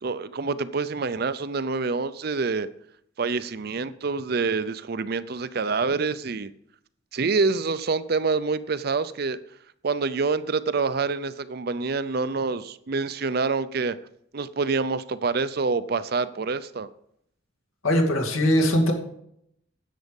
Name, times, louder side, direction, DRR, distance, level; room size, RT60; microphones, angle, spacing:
voice 1, 0.0-2.7 3.2-6.5 7.1-9.4 9.8-14.0 14.3-16.9, right 4 dB, 50° right, 14 dB, 0.5 m, -26 dB
voice 2, 17.8-18.9, equal, 90° left, 1 dB, 2.5 m, -20 dB
10.5 x 8.3 x 5.3 m, 0.71 s
head